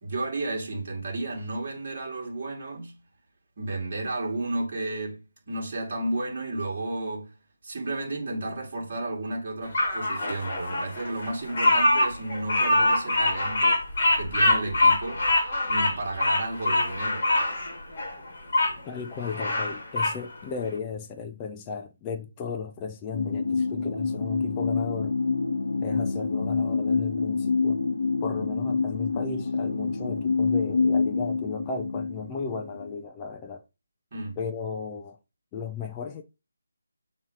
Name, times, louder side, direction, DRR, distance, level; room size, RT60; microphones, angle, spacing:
voice 1, 0.0-2.9 3.6-5.2 5.5-7.3 7.6-13.8 14.1-15.2 15.7-17.3 34.1-34.4, right 2 dB, 25° right, 2.4 m, -32 dB
Bird vocalization bird call bird song, 9.7-18.7 19.2-20.2, left 2 dB, 30° left, 1.6 m, -24 dB
voice 2, 18.9-25.2 25.8-27.8 28.2-33.6 34.4-35.2 35.5-36.2, left 6 dB, 10° left, 0.4 m, -35 dB
sound 1, 23.1-32.9, left 4 dB, 50° left, 1.0 m, -27 dB
7.6 x 2.9 x 5.2 m
figure-of-eight pair, 180°, 0 cm